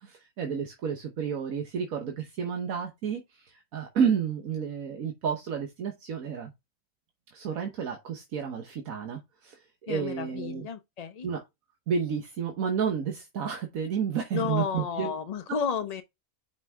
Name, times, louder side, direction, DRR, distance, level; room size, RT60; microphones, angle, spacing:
voice 1, 0.0-6.5 7.3-10.7 11.2-11.4 11.9-15.1 15.5-15.6, right 7 dB, 85° right, 1.5 m, -31 dB
voice 2, 9.9-11.3 14.3-16.0, left 6 dB, 50° left, 0.4 m, -32 dB
5.8 x 5.4 x 3.4 m
omnidirectional pair, 1.4 m